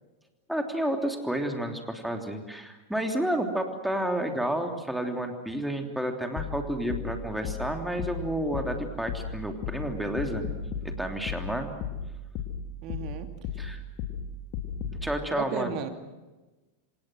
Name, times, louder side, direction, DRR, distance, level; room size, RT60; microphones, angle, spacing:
voice 1, 0.5-10.5 10.8-11.7 13.6-13.8 15.0-15.7, right 1 dB, ahead, 4 dB, 3.2 m, -30 dB
sound 1, 6.4-15.1, left 6 dB, 40° left, 3.2 m, -35 dB
voice 2, 12.8-13.3 15.3-15.9, right 8 dB, 40° right, 6 dB, 2.8 m, -33 dB
27.5 x 27.0 x 6.3 m, 1.2 s
figure-of-eight pair, 90°, 0 cm